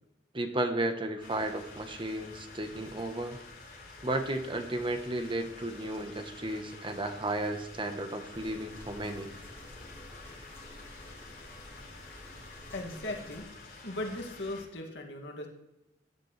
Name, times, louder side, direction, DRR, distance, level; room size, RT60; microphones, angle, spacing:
voice 1, 0.3-3.4 4.0-9.3, right 1 dB, 30° right, 7 dB, 1.0 m, -33 dB
sound 1, 1.2-14.6, left 3 dB, 55° left, 5.1 m, -50 dB
sound 2, 8.3-13.4, left 1 dB, 15° left, 2.3 m, -51 dB
voice 2, 12.7-13.5 13.8-15.5, left 1 dB, 80° left, 0 dB, 2.3 m, -38 dB
15.0 x 9.9 x 3.3 m, 0.94 s
head